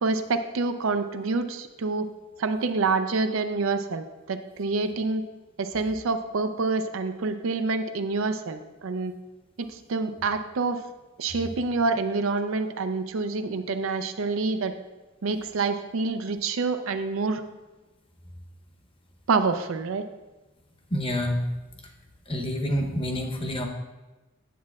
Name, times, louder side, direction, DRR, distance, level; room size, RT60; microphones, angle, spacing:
voice 1, 0.0-2.1 2.4-5.2 5.6-9.1 9.6-10.8 11.2-14.7 15.2-17.4 19.3-20.1, right 3 dB, 90° right, 9 dB, 0.5 m, -27 dB
voice 2, 20.9-21.4 22.3-23.6, equal, 25° left, 3 dB, 0.8 m, -27 dB
9.3 x 7.5 x 2.4 m, 1.1 s
head